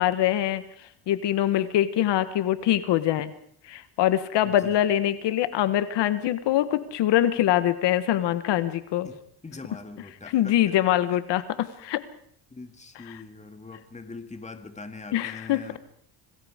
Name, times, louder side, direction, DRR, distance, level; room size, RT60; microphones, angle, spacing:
voice 1, 0.0-3.3 3.6-9.1 10.3-12.0 15.1-15.6, left 12 dB, 75° left, 13 dB, 1.3 m, -24 dB
voice 2, 4.4-4.9 9.0-9.2 9.4-10.8 11.1-11.2 12.5-15.8, left 3 dB, 15° left, 8 dB, 2.2 m, -42 dB
26.5 x 20.0 x 5.0 m, 0.63 s
cardioid pair, 120°, 42 cm